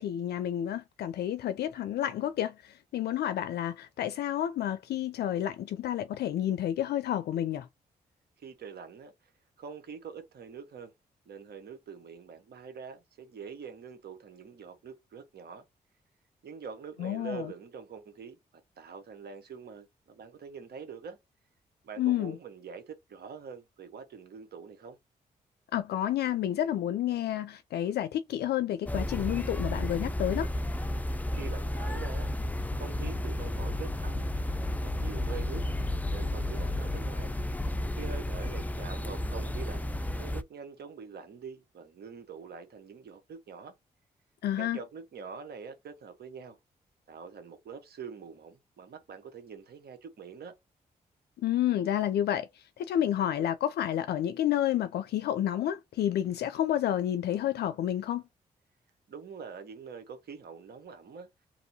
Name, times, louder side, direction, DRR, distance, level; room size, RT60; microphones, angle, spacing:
voice 1, 0.0-7.7 17.0-17.5 22.0-22.3 25.7-30.5 44.4-44.8 51.4-52.5 52.8-58.2, left 11 dB, 70° left, 0.4 m, -30 dB
voice 2, 8.4-9.1 9.6-10.9 11.2-15.6 16.4-18.4 18.8-21.2 21.8-25.0 31.3-32.3 32.7-34.3 34.8-35.6 36.1-37.3 38.0-39.9 40.2-43.7 44.6-46.6 47.1-50.5 59.1-61.3, right 6 dB, 65° right, 1.2 m, -44 dB
sound 1, 28.9-40.4, left 1 dB, 10° left, 0.5 m, -32 dB
2.9 x 2.6 x 4.0 m
supercardioid pair, 45°, 17 cm